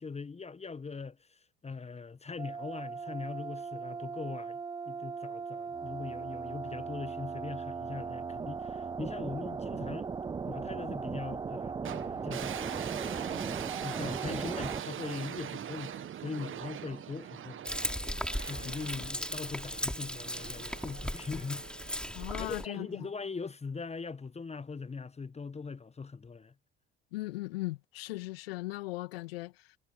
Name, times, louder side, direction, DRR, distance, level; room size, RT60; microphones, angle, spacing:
voice 1, 0.0-4.6 4.9-10.1 10.5-12.6 13.8-17.7 18.5-21.6 21.9-26.5, left 4 dB, 20° left, 1.3 m, -41 dB
sound 1, 2.4-14.8, right 5 dB, 15° right, 0.4 m, -38 dB
sound 2, 11.8-23.1, right 10 dB, 40° right, 1.4 m, -42 dB
Frying (food), 17.6-22.6, left 1 dB, 5° left, 3.3 m, -37 dB
voice 2, 22.1-23.1 27.1-29.7, left 20 dB, 75° left, 2.4 m, -38 dB
hypercardioid pair, 60°, 30 cm